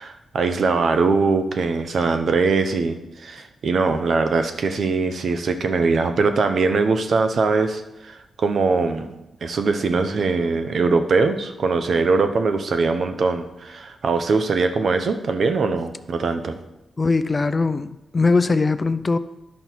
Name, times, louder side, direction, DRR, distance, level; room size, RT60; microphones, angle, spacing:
voice 1, 0.0-9.1 9.4-16.6, right 4 dB, 60° right, 8 dB, 0.9 m, -21 dB
voice 2, 17.0-19.2, left 3 dB, 30° left, 12 dB, 0.5 m, -20 dB
11.5 x 5.4 x 4.6 m, 0.93 s
cardioid pair, 80°, 0 cm